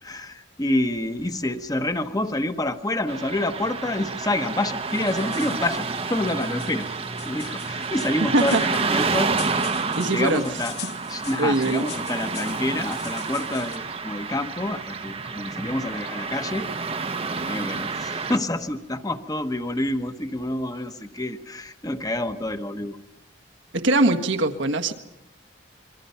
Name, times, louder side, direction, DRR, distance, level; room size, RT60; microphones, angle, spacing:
voice 1, 0.0-6.9 7.2-9.3 10.1-10.7 11.1-16.7 17.4-23.0, left 1 dB, 20° left, 8 dB, 1.1 m, -28 dB
Car passing by / Traffic noise roadway noise, 3.1-18.4, right 4 dB, 30° right, 0.9 m, -29 dB
sound 1, 4.9-13.8, left 9 dB, 60° left, 1.7 m, -43 dB
voice 2, 10.0-10.4 11.4-11.9 23.7-24.9, right 2 dB, 80° right, 4 dB, 1.6 m, -21 dB
27.0 x 23.5 x 5.7 m, 0.93 s
head